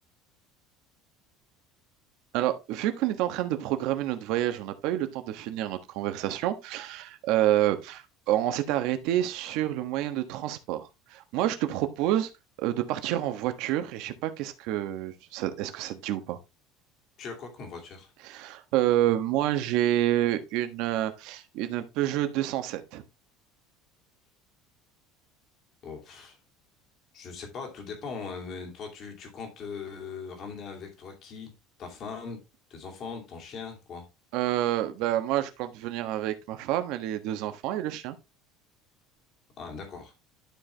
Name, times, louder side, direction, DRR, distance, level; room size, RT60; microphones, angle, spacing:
voice 1, 2.3-12.3 12.6-16.4 18.2-23.0 34.3-38.2, right 13 dB, 55° right, 1.3 m, -28 dB
voice 2, 17.2-18.1 25.8-26.4 27.1-31.5 31.8-32.4 32.7-34.0 39.6-40.1, left 5 dB, 35° left, 2.6 m, -40 dB
11.5 x 4.8 x 3.4 m
cardioid pair, 180°, 0 cm